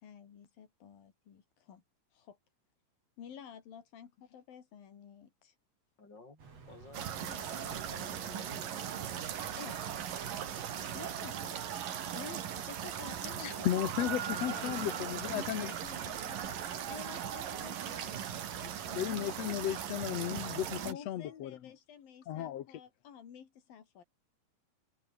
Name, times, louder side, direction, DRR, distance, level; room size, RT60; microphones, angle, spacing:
voice 1, 0.0-1.8 2.1-2.4 3.2-5.5 7.3-9.1 9.6-9.8 10.9-11.8 12.1-16.6 16.9-18.2 18.8-19.3 20.8-24.0, left 8 dB, 90° left, 4.7 m, -51 dB
voice 2, 6.0-6.4 6.7-8.7, left 3 dB, 30° left, 6.7 m, -53 dB
Car passing by, 6.4-11.9, right 5 dB, 45° right, 5.2 m, -56 dB
sound 1, 6.9-20.9, right 9 dB, 75° right, 4.0 m, -39 dB
voice 3, 13.4-15.7 18.6-21.6 22.3-22.8, left 12 dB, 65° left, 1.9 m, -35 dB
omnidirectional pair, 4.0 m